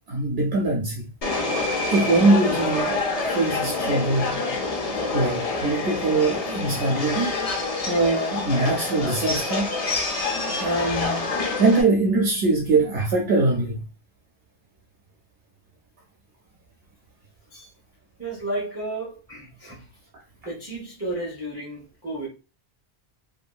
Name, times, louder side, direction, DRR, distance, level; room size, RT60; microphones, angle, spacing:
voice 1, 0.1-1.1 1.9-3.0 3.3-4.4 5.1-7.4 7.9-9.7 10.6-11.3 11.6-13.8, right 2 dB, 70° right, 0.9 m, -22 dB
Subway metro underground, 1.2-11.8, left 3 dB, 45° left, 0.6 m, -27 dB
voice 2, 18.2-19.8 20.4-22.3, right 2 dB, 15° right, 0.7 m, -32 dB
2.7 x 2.6 x 2.2 m
omnidirectional pair, 1.1 m